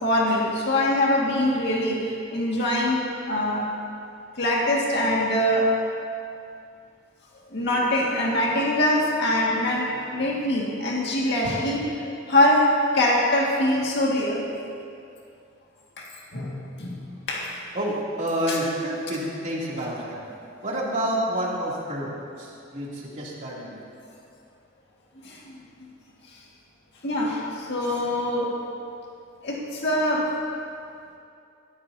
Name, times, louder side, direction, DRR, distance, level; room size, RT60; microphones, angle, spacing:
voice 1, 0.0-3.7 4.4-5.7 7.5-14.4 16.0-17.0 17.3-17.6 25.2-25.6 27.0-28.5 29.4-30.3, left 1 dB, 60° left, -3 dB, 2.0 m, -23 dB
voice 2, 17.7-20.2 20.6-23.8, right 1 dB, 40° right, -5 dB, 2.9 m, -29 dB
18.5 x 14.5 x 2.8 m, 2.5 s
head